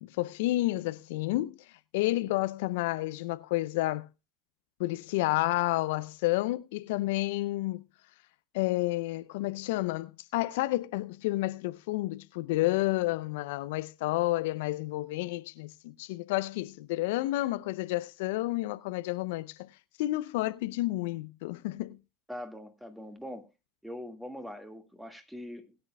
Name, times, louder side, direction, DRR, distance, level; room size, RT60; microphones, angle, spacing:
voice 1, 0.0-1.6 1.9-4.1 4.8-7.8 8.5-19.7 20.0-22.0, left 18 dB, 65° left, 0.5 m, -30 dB
voice 2, 22.3-23.5 23.8-25.8, left 1 dB, ahead, 1.9 m, -42 dB
20.5 x 9.7 x 2.3 m
hypercardioid pair, 80°, 0 cm